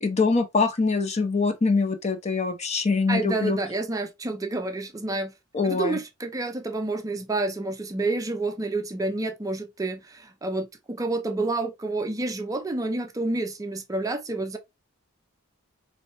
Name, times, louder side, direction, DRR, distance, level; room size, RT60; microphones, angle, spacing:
voice 1, 0.0-3.6 5.5-6.0, left 4 dB, 30° left, 0.6 m, -24 dB
voice 2, 3.1-5.3 5.6-14.6, right 2 dB, 15° right, 0.5 m, -29 dB
4.3 x 3.1 x 2.8 m
head